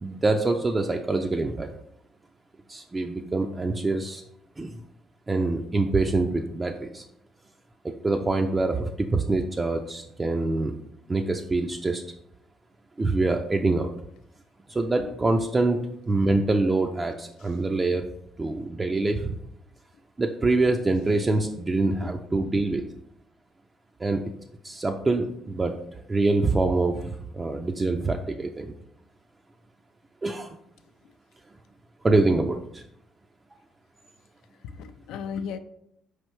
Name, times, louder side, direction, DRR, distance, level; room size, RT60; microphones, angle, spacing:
voice 1, 0.0-1.7 2.7-4.2 4.6-4.7 5.3-7.0 7.8-10.7 11.1-12.0 13.0-13.9 14.7-15.8 16.1-18.1 18.4-19.3 20.2-22.8 24.0-24.2 24.6-28.7 30.2-30.6 32.0-32.8, right 2 dB, 25° right, 3 dB, 0.3 m, -25 dB
voice 2, 34.6-35.6, left 6 dB, 80° left, 10 dB, 0.3 m, -37 dB
4.5 x 3.2 x 3.0 m, 0.75 s
supercardioid pair, 80°, 0 cm